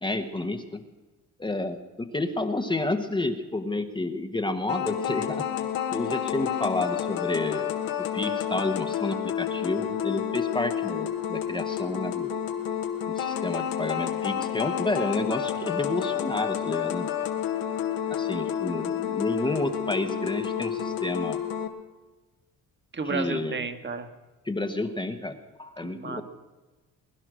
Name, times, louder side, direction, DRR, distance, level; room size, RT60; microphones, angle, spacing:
voice 1, 0.0-0.8 1.4-5.5 5.9-12.3 13.1-17.1 18.1-21.4 23.0-23.6 24.4-26.2, left 2 dB, 15° left, 5 dB, 1.1 m, -30 dB
sound 1, 4.7-21.7, left 9 dB, 75° left, 1.6 m, -30 dB
voice 2, 22.9-24.1 25.8-26.2, right 4 dB, 30° right, 8 dB, 1.7 m, -32 dB
21.0 x 10.5 x 6.3 m, 1.2 s
cardioid pair, 100°, 34 cm